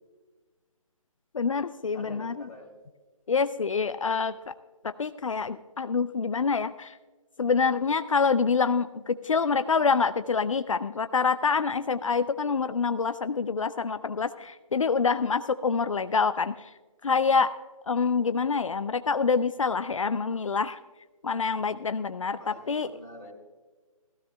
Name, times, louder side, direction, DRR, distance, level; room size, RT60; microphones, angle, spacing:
voice 1, 1.3-2.3 3.3-4.5 4.8-7.0 7.4-16.7 17.0-17.5 17.8-20.8 21.2-22.9, left 5 dB, 65° left, 12 dB, 0.5 m, -26 dB
voice 2, 1.9-2.7 22.4-23.3, left 1 dB, 5° left, -7 dB, 2.5 m, -45 dB
17.5 x 15.5 x 2.2 m, 1.3 s
figure-of-eight pair, 150°, 18 cm